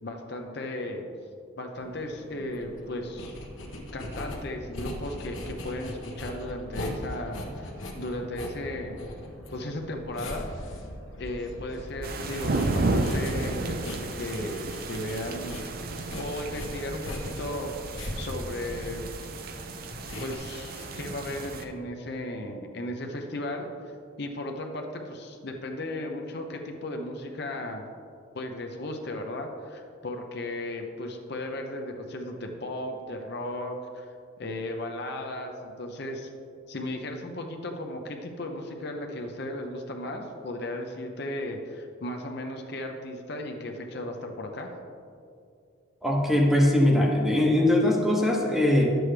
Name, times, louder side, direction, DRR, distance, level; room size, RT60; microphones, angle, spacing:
voice 1, 0.0-1.1 1.6-3.3 3.9-9.0 9.5-10.5 11.2-15.6 15.9-17.7 18.1-19.1 20.2-23.7 24.2-27.8 28.3-34.1 34.4-36.3 36.7-44.7, left 1 dB, 55° left, 3 dB, 0.7 m, -35 dB
sound 1, 1.7-20.4, left 1 dB, 70° left, 1.3 m, -40 dB
sound 2, 12.0-21.6, right 2 dB, 45° right, 0.5 m, -33 dB
voice 2, 46.0-48.9, left 1 dB, ahead, -1 dB, 0.9 m, -21 dB
10.5 x 7.8 x 3.3 m, 2.4 s
head